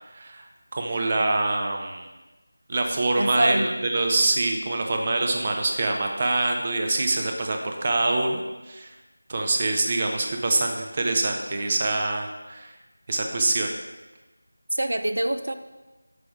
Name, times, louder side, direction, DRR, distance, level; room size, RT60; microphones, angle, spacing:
voice 1, 0.1-0.5 0.7-2.1 2.7-8.9 9.3-12.7 13.1-13.7, right 2 dB, 30° right, 3 dB, 0.6 m, -25 dB
voice 2, 3.2-3.8 14.7-15.5, right 1 dB, 75° right, 9 dB, 0.5 m, -25 dB
5.9 x 4.9 x 3.5 m, 1.1 s
figure-of-eight pair, 170°, 0 cm